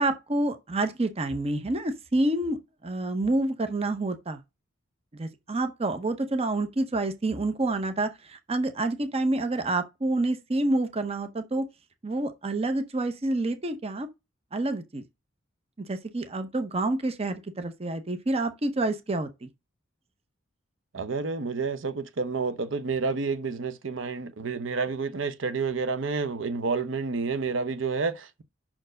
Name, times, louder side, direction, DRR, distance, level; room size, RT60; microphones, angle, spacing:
voice 1, 0.0-2.6 2.8-4.4 5.1-11.7 12.0-14.1 14.5-15.0 15.8-19.5, right 2 dB, 30° right, 0.7 m, -28 dB
voice 2, 20.9-28.4, right 4 dB, 70° right, 0.8 m, -29 dB
5.9 x 4.5 x 6.3 m
head